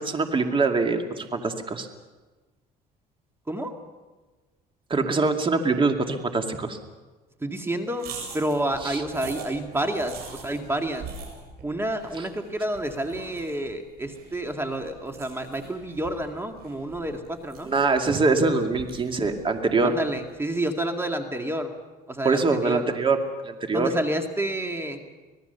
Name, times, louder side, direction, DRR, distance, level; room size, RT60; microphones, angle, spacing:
voice 1, 0.0-1.9 4.9-6.8 8.8-9.0 17.6-19.9 22.2-23.2 23.4-23.9, right 3 dB, 30° right, 5 dB, 2.4 m, -23 dB
voice 2, 7.4-8.1 8.3-11.1 11.6-18.2 19.8-21.7 22.1-22.9 23.7-25.0, right 1 dB, 15° right, 5 dB, 2.1 m, -29 dB
sound 1, 7.9-20.4, right 5 dB, 70° right, 7.4 m, -43 dB
26.0 x 18.0 x 6.9 m, 1.3 s
cardioid pair, 110°, 17 cm